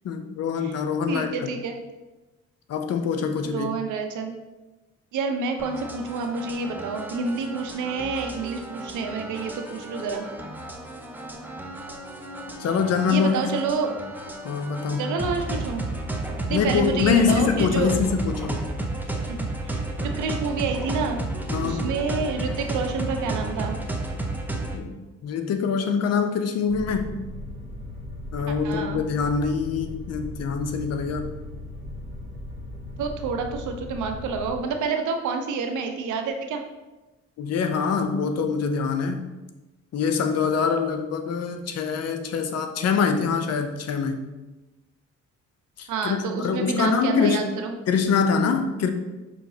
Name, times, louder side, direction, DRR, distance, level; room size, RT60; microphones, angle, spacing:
voice 1, 0.0-1.5 2.7-3.7 12.6-13.4 14.4-15.2 16.5-18.6 21.5-21.9 24.7-25.0 25.2-27.2 28.3-31.4 37.4-39.2 39.9-44.2 45.8-47.4 47.9-48.9, left 5 dB, 55° left, 6 dB, 0.5 m, -24 dB
voice 2, 1.1-1.8 3.4-4.3 5.1-10.3 13.1-14.0 15.0-15.8 16.5-18.0 19.3-21.2 21.6-23.8 28.5-29.0 33.0-36.6 45.9-47.7, right 4 dB, 75° right, 5 dB, 0.6 m, -28 dB
sound 1, 5.6-24.8, right 2 dB, 5° right, 0.5 m, -32 dB
sound 2, 26.7-34.6, left 1 dB, 20° right, 1.4 m, -38 dB
5.6 x 2.9 x 2.7 m, 1.1 s
cardioid pair, 90°, 30 cm